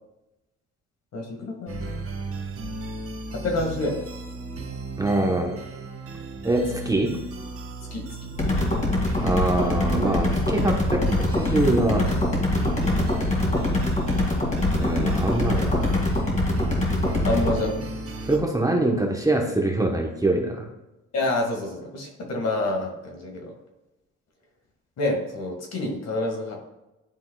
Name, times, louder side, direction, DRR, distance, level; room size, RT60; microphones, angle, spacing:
voice 1, 1.1-2.0 3.4-4.0 5.2-5.4 7.9-8.3 17.2-17.8 21.1-23.5 25.0-26.6, left 2 dB, 60° left, 2 dB, 1.7 m, -28 dB
sound 1, 1.7-18.4, right 2 dB, 50° right, 1.3 m, -34 dB
voice 2, 5.0-5.6 6.4-7.2 9.2-12.2 14.7-15.9 18.2-20.7, right 2 dB, 10° right, 1 dB, 0.9 m, -24 dB
sound 2, 8.4-17.5, left 1 dB, 25° left, 2.2 m, -24 dB
11.0 x 3.8 x 2.3 m, 0.99 s
cardioid pair, 90°, 30 cm